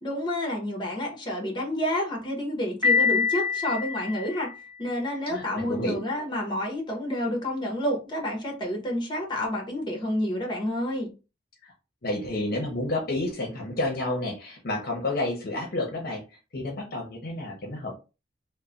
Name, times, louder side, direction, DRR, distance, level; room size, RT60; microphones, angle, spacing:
voice 1, 0.0-4.5 4.8-11.1, left 1 dB, 25° left, 0.9 m, -29 dB
Piano, 2.8-4.8, left 5 dB, 20° right, 1.6 m, -25 dB
voice 2, 5.3-6.0 11.6-11.7 12.0-18.0, left 2 dB, 55° left, 0.7 m, -30 dB
3.0 x 2.1 x 2.5 m
head